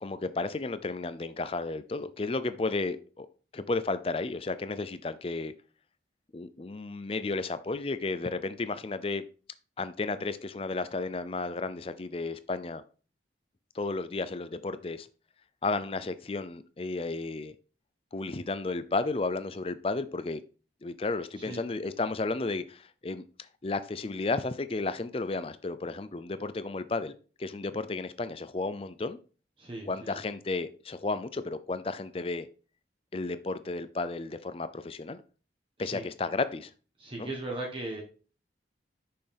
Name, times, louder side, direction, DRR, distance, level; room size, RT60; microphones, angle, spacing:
voice 1, 0.0-3.3 3.5-5.5 6.3-9.2 9.8-12.8 13.7-15.1 15.6-17.6 18.1-20.4 20.8-23.2 23.6-27.1 27.4-29.2 29.9-32.5 33.1-35.2 35.8-36.7 37.2-37.3, left 3 dB, 30° left, 0.5 m, -33 dB
voice 2, 29.6-30.2 35.8-36.1 37.0-38.0, right 2 dB, 30° right, 1.2 m, -38 dB
6.5 x 5.7 x 3.4 m
head